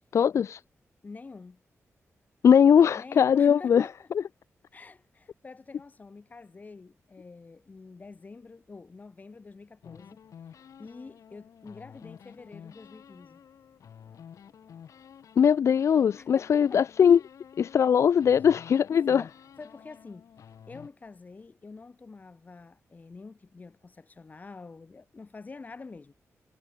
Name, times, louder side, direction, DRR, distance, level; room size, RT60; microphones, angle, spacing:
voice 1, 0.1-0.6 2.4-3.9 15.4-17.2 17.6-19.2, left 8 dB, 60° left, 0.5 m, -20 dB
voice 2, 1.0-1.6 2.9-4.1 4.7-10.2 10.8-13.4 16.2-16.8 19.1-20.3 20.7-26.1, left 4 dB, 30° left, 4.8 m, -47 dB
sound 1, 9.8-15.5 15.8-17.9 18.2-20.9, left 8 dB, 90° left, 2.4 m, -50 dB
wide cardioid pair, 165°, 5 cm